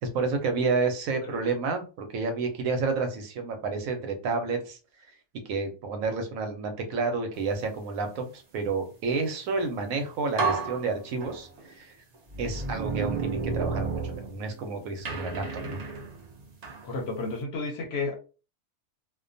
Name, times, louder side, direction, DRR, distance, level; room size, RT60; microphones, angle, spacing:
voice 1, 0.0-4.8 5.4-11.9 12.4-15.8, right 4 dB, 85° right, 5 dB, 1.1 m, -30 dB
sound 1, 9.8-9.9 10.4-11.7 12.3-14.6 15.0-16.9, right 4 dB, 60° right, 0.4 m, -32 dB
voice 2, 16.8-18.1, left 3 dB, 60° left, 2 dB, 0.8 m, -32 dB
2.5 x 2.2 x 2.5 m, 0.34 s
omnidirectional pair, 1.4 m